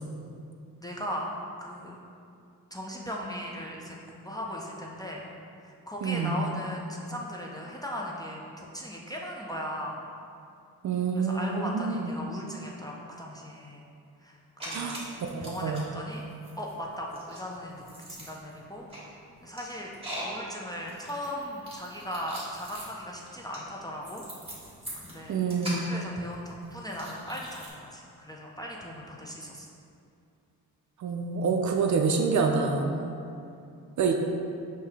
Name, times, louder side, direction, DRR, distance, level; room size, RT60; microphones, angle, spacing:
voice 1, 0.8-1.3 1.6-2.0 2.7-5.2 5.6-10.0 11.1-13.9 14.2-14.4 14.7-15.0 15.4-16.3 16.6-18.9 19.4-19.9 20.2-24.2 25.0-25.4 25.9-29.7 32.9-33.3, equal, 10° left, -2 dB, 0.4 m, -38 dB
voice 2, 6.0-6.3 10.8-12.1 14.7-15.0 15.3-15.8 25.3-25.8 31.0-32.9 34.0-34.1, right 5 dB, 50° right, 3 dB, 0.5 m, -27 dB
sound 1, 14.6-15.8 16.1-27.7, equal, 15° right, 1.5 m, -42 dB
5.3 x 2.8 x 3.4 m, 2.5 s
cardioid pair, 95°, 38 cm